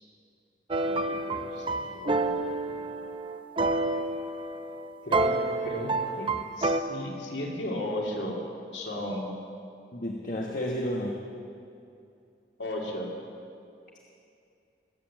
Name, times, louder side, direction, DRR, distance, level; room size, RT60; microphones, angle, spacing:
sound 1, 0.7-6.8, right 2 dB, 30° right, 0.6 m, -29 dB
voice 1, 0.8-2.8 5.0-5.4 5.6-8.4 8.7-9.3 12.6-13.1, left 1 dB, 90° left, -2 dB, 2.5 m, -35 dB
voice 2, 9.9-11.2, equal, 50° left, -1 dB, 1.2 m, -31 dB
21.0 x 8.6 x 7.4 m, 2.5 s
head